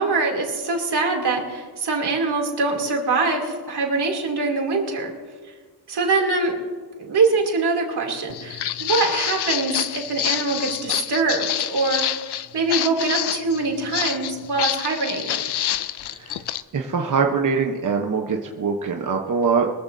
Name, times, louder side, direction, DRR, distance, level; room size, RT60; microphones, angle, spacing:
voice 1, 0.0-5.1 5.9-6.6 7.0-12.1 12.5-15.4, right 3 dB, 75° right, 0 dB, 2.9 m, -23 dB
Walk footsteps, 8.3-16.6, left 11 dB, 80° left, 0.6 m, -27 dB
voice 2, 16.1-16.4 16.7-19.7, right 5 dB, 50° right, 1 dB, 1.0 m, -23 dB
23.0 x 15.0 x 2.7 m, 1.5 s
wide cardioid pair, 165°, 40 cm